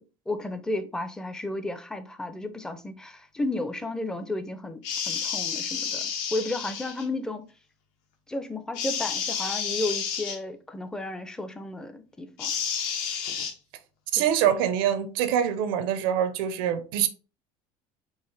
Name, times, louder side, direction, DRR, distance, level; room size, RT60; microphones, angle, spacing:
voice 1, 0.0-7.4 8.3-12.5 14.2-14.3, left 2 dB, 5° left, 0.4 m, -33 dB
sound 1, 4.8-7.0 8.7-10.4 12.4-13.5, left 7 dB, 75° left, 1.0 m, -30 dB
voice 2, 14.1-17.1, right 9 dB, 85° right, 0.7 m, -24 dB
4.7 x 2.9 x 3.2 m
cardioid pair, 150°, 11 cm